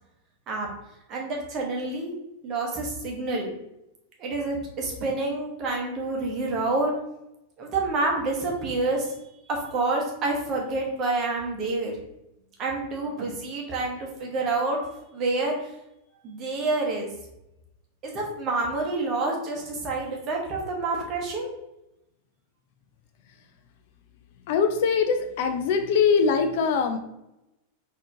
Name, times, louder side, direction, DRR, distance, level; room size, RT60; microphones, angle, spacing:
voice 1, 1.1-2.1 2.4-3.5 4.2-6.9 7.6-9.1 9.5-12.0 12.6-14.8 15.1-15.7 16.2-17.1 18.0-21.5, right 3 dB, 35° right, -1 dB, 1.0 m, -28 dB
voice 2, 24.5-27.0, left 6 dB, 50° left, 6 dB, 0.4 m, -22 dB
4.2 x 2.8 x 2.7 m, 0.88 s
figure-of-eight pair, 90°, 0 cm